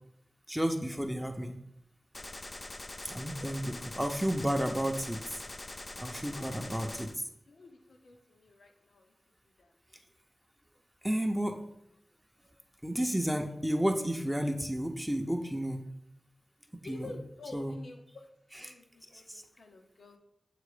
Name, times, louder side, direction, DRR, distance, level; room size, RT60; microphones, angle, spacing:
voice 1, 0.5-1.6 3.0-5.4 6.0-7.2 11.0-11.6 12.8-15.8 16.8-17.2 17.5-17.8 18.5-18.7 19.3-19.4, equal, 5° right, 3 dB, 0.6 m, -32 dB
Gunshot gunfire, 2.1-7.1, left 2 dB, 35° left, 0.4 m, -44 dB
voice 2, 3.1-3.5 6.3-6.9 7.5-9.0 9.6-9.7 16.8-18.0 18.6-20.2, left 2 dB, 85° left, 3 dB, 0.8 m, -49 dB
7.6 x 3.0 x 4.9 m, 0.76 s
wide cardioid pair, 70°, 0 cm